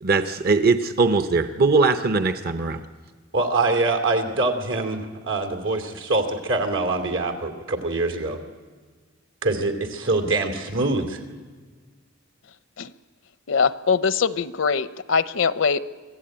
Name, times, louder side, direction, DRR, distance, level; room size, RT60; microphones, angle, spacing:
voice 1, 0.0-2.8, right 4 dB, 50° right, 8 dB, 0.8 m, -20 dB
voice 2, 3.3-8.4 9.4-11.2, right 2 dB, 85° right, 4 dB, 2.6 m, -24 dB
voice 3, 13.5-15.8, left 5 dB, 70° left, 13 dB, 0.7 m, -22 dB
24.5 x 15.0 x 8.8 m, 1.5 s
head